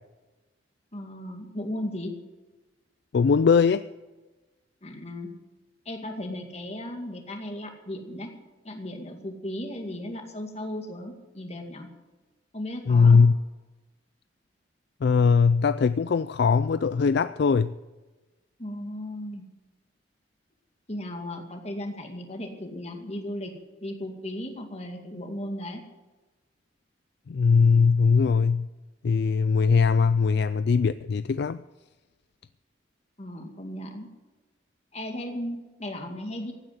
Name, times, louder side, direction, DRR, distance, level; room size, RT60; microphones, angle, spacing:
voice 1, 0.9-2.1 4.8-5.3 5.9-8.3 8.6-11.9 12.5-13.2 18.6-19.5 20.9-23.5 23.8-25.8 33.2-34.1 34.9-36.5, left 1 dB, 35° left, 4 dB, 2.2 m, -36 dB
voice 2, 3.1-3.8 12.9-13.3 15.0-17.7 27.3-28.7 29.0-31.6, left 5 dB, 60° left, 14 dB, 0.4 m, -20 dB
15.5 x 9.1 x 7.9 m, 1.2 s
head